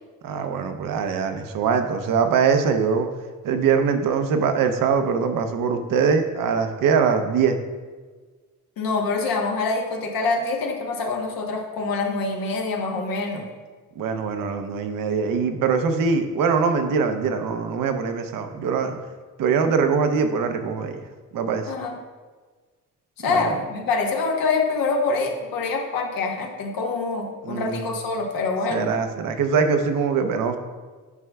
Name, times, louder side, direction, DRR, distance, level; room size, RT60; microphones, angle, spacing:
voice 1, 0.2-3.1 3.4-7.6 14.0-19.0 19.4-21.0 21.3-21.7 23.2-23.6 27.4-27.8 28.7-30.6, right 6 dB, 65° right, 7 dB, 0.7 m, -22 dB
voice 2, 8.8-13.5 21.6-22.0 23.2-28.9, left 3 dB, 70° left, 1 dB, 1.1 m, -25 dB
9.5 x 5.5 x 2.3 m, 1.4 s
cardioid pair, 125°, 35 cm